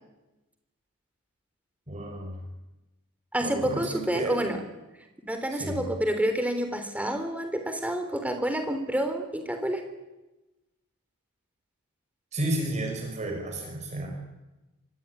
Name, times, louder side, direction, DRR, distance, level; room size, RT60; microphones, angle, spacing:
voice 1, 1.9-2.4 3.4-4.5 5.5-5.8 12.3-14.1, right 1 dB, 30° right, 2 dB, 6.0 m, -32 dB
voice 2, 3.3-4.6 5.3-9.8, right 1 dB, 5° right, 6 dB, 3.6 m, -28 dB
26.0 x 23.0 x 9.8 m, 1.1 s
head